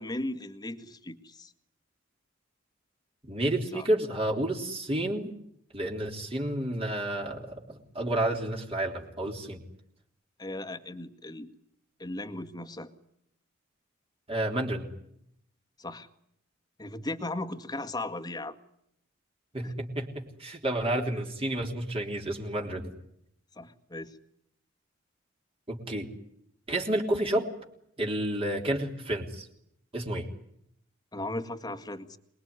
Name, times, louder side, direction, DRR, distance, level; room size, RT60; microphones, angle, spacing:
voice 1, 0.0-1.5 3.7-3.9 10.4-11.5 12.0-12.9 15.8-16.1 16.8-18.6 19.6-19.7 23.6-24.2 31.1-32.2, left 2 dB, 20° left, 6 dB, 1.8 m, -37 dB
voice 2, 3.2-5.3 5.7-9.6 14.3-14.9 19.5-22.9 25.7-26.1 26.7-27.5 28.0-29.5 29.9-30.3, right 1 dB, 30° right, 1 dB, 3.5 m, -30 dB
27.5 x 21.5 x 9.7 m, 0.75 s
head